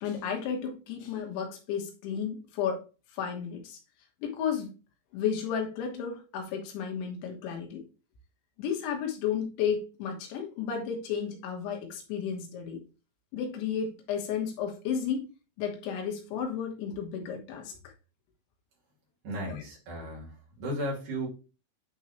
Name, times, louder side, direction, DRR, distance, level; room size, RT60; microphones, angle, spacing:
voice 1, 0.0-2.8 3.1-3.8 4.2-4.7 5.1-7.9 8.6-12.8 13.3-15.3 15.6-17.8, left 7 dB, 85° left, 3.8 m, -33 dB
voice 2, 19.2-21.3, equal, 50° right, 4.0 m, -35 dB
9.8 x 4.5 x 3.2 m
omnidirectional pair, 5.2 m